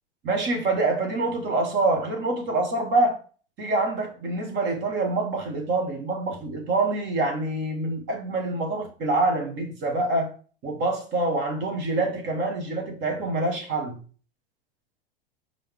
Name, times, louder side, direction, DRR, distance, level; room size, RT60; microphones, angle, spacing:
voice 1, 0.2-3.2 3.6-10.3 10.6-14.0, right 2 dB, 40° right, 1.9 m, -26 dB
5.5 x 4.8 x 3.6 m
hypercardioid pair, 95°, 29 cm